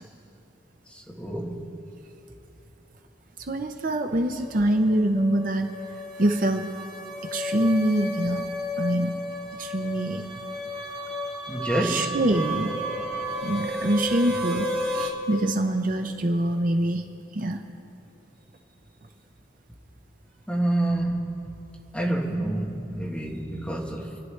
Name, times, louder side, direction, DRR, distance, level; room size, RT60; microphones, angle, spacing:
voice 1, 0.9-1.8 11.5-12.2 20.5-21.6 21.9-24.1, right 1 dB, 5° left, -2 dB, 1.4 m, -28 dB
voice 2, 3.5-5.7 6.2-6.7 7.3-8.4 8.8-9.2 9.6-10.3 11.8-12.8 13.4-14.7 14.9-17.1 17.3-17.6, right 1 dB, 45° right, 5 dB, 0.7 m, -24 dB
sound 1, 4.3-15.1, left 1 dB, 15° right, 1.9 m, -33 dB
27.0 x 11.0 x 3.3 m, 2.9 s
head